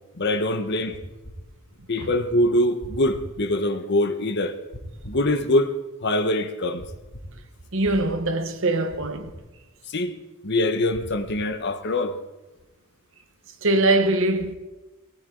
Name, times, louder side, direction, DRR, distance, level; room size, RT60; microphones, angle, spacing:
voice 1, 0.1-1.0 1.9-4.6 5.1-6.8 9.9-10.1 10.4-12.2, left 1 dB, 55° left, 1.1 m, -23 dB
sound 1, 0.9-1.4 2.8-3.3 4.7-5.2 6.8-7.3 8.9-9.4 10.9-11.5, equal, 70° left, 2.7 m, -40 dB
voice 2, 7.7-9.3 13.6-14.5, right 2 dB, 65° right, 1.3 m, -22 dB
18.5 x 18.0 x 3.9 m
head